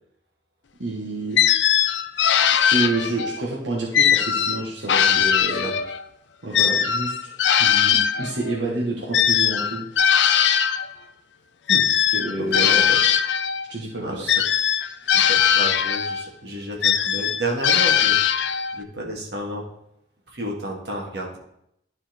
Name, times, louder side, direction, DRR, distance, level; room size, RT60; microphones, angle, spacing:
voice 1, 0.8-1.4 2.5-5.7 6.4-7.2 7.6-9.9 12.1-12.8 13.7-14.4, right 2 dB, 85° right, -3 dB, 1.5 m, -28 dB
sound 1, 1.4-3.4 3.9-6.0 6.5-10.9 11.7-13.7 14.3-16.3 16.8-18.8, left 9 dB, 85° left, 0.5 m, -20 dB
voice 2, 12.4-13.0 14.0-14.3 15.1-19.6 20.3-21.4, right 1 dB, 65° right, -1 dB, 2.0 m, -31 dB
12.0 x 4.4 x 4.4 m, 0.75 s
head